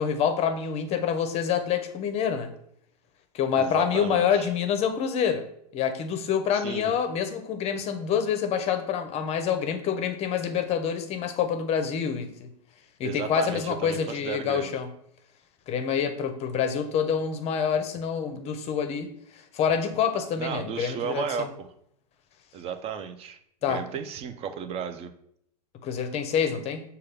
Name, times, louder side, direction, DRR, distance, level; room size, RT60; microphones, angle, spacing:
voice 1, 0.0-2.5 3.3-5.4 5.7-12.5 13.0-14.9 15.7-19.1 19.5-21.5 23.6-23.8 25.8-26.8, left 7 dB, 30° left, 8 dB, 0.6 m, -27 dB
voice 2, 3.6-4.5 6.5-6.9 13.0-14.7 20.4-21.7 22.5-25.1, right 7 dB, 30° right, 9 dB, 0.4 m, -34 dB
6.4 x 2.3 x 3.3 m, 0.70 s
hypercardioid pair, 115°, 21 cm